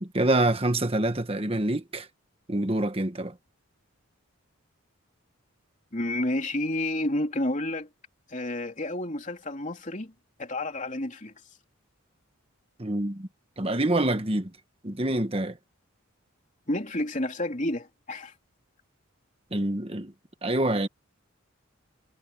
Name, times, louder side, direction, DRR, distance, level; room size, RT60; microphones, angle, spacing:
voice 1, 0.0-2.1 2.5-3.3 12.8-13.3 13.6-14.5 14.8-15.6 19.5-20.1 20.4-20.9, right 1 dB, 25° right, 1.5 m, -26 dB
voice 2, 5.9-7.9 8.3-10.1 10.4-11.3 16.7-18.3, left 1 dB, 35° left, 3.2 m, -30 dB
head